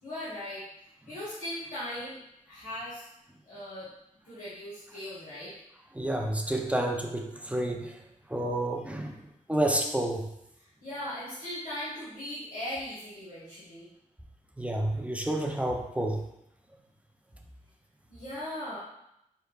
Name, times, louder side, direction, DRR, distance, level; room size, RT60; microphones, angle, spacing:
voice 1, 0.0-0.6 1.1-2.2 2.4-3.0 3.5-3.9 4.2-5.5 10.8-13.9 18.1-18.8, left 1 dB, 85° left, -11 dB, 1.5 m, -38 dB
voice 2, 5.9-8.0 8.3-9.2 9.5-10.2 14.6-16.2, right 1 dB, 10° right, 2 dB, 0.4 m, -29 dB
4.5 x 3.2 x 2.4 m, 0.81 s
wide cardioid pair, 85°, 14 cm